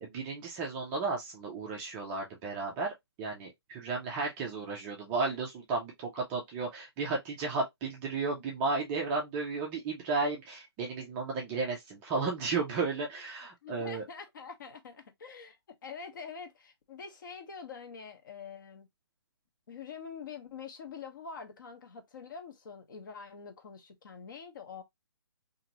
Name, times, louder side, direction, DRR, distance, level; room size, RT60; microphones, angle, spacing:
voice 1, 0.0-14.0, right 4 dB, 10° right, 0.3 m, -34 dB
voice 2, 13.6-15.6 15.8-18.9 19.7-24.8, left 6 dB, 50° left, 0.8 m, -45 dB
2.8 x 2.6 x 2.7 m
hypercardioid pair, 155°, 14 cm